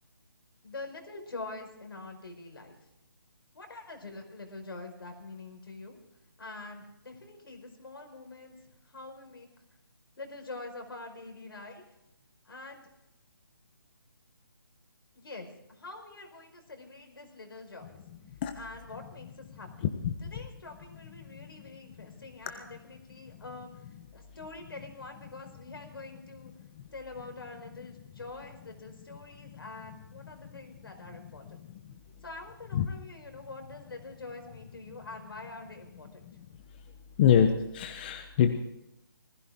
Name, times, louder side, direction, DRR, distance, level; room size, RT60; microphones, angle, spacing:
voice 1, 0.6-2.8 3.5-6.0 6.4-8.5 8.9-9.5 10.2-11.8 12.5-12.9 15.1-18.0 18.5-19.9 20.3-23.7 24.1-26.5 26.9-31.6 32.2-36.3, left 3 dB, 75° left, 4 dB, 5.2 m, -45 dB
voice 2, 19.8-20.3 21.3-21.7 22.0-22.1 23.3-23.4 26.8-26.9 31.6-31.9 32.7-32.9 36.3-36.4 37.2-38.5, left 8 dB, 25° left, 6 dB, 1.0 m, -27 dB
20.0 x 15.5 x 3.8 m, 0.86 s
hypercardioid pair, 160°, 12 cm